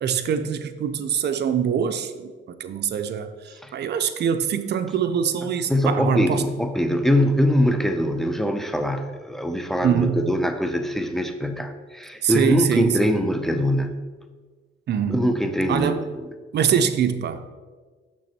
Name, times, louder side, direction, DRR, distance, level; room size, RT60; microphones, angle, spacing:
voice 1, 0.0-6.4 9.8-10.2 12.2-13.2 14.9-15.4 15.7-16.1 16.5-17.4, right 8 dB, 60° right, 9 dB, 0.6 m, -24 dB
voice 2, 5.7-14.1 15.1-16.3, equal, ahead, 7 dB, 0.7 m, -23 dB
6.2 x 6.2 x 4.3 m, 1.4 s
cardioid pair, 90°, 20 cm